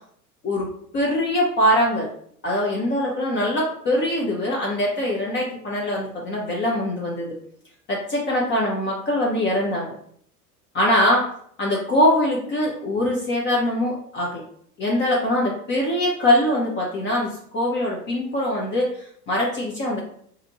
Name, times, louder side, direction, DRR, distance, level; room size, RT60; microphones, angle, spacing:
voice 1, 0.9-2.1 2.4-7.3 7.9-9.9 10.7-11.3 11.6-14.4 14.8-20.0, left 1 dB, 25° left, -3 dB, 0.6 m, -22 dB
2.7 x 2.5 x 4.0 m, 0.65 s
figure-of-eight pair, 80°, 47 cm